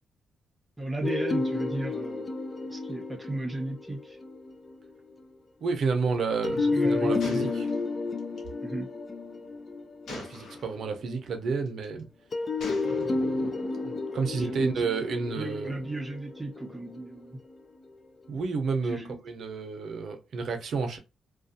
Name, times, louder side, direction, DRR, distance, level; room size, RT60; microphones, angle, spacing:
voice 1, 0.8-2.3 2.7-4.2 6.6-7.8 8.6-8.9 14.3-17.4 18.8-19.2, right 2 dB, 10° right, 0.8 m, -35 dB
sound 1, 1.0-4.9 6.4-10.9 12.3-17.5, left 3 dB, 35° left, 0.4 m, -31 dB
voice 2, 5.6-7.7 10.1-12.1 12.8-15.7 18.3-19.0 19.2-21.0, right 4 dB, 65° right, 0.6 m, -31 dB
Gunshot gunfire, 7.2-8.5 10.1-10.8 11.7-12.0 12.6-13.4, left 2 dB, 80° left, 0.8 m, -43 dB
2.4 x 2.3 x 2.6 m
cardioid pair, 110°, 0 cm